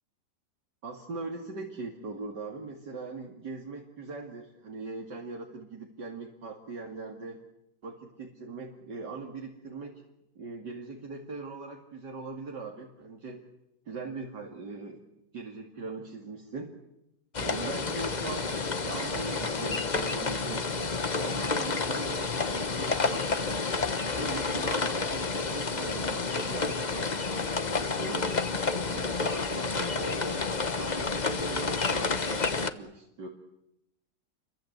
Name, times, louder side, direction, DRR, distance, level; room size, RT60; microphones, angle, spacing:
voice 1, 0.8-7.4 7.8-10.0 10.4-13.4 13.9-15.0 15.3-16.7 17.4-23.6 24.1-28.3 28.9-33.3, right 3 dB, 70° right, 1 dB, 3.2 m, -40 dB
sound 1, 17.3-32.7, left 4 dB, 30° left, 1.1 m, -30 dB
29.5 x 23.5 x 8.2 m, 0.84 s
omnidirectional pair, 1.9 m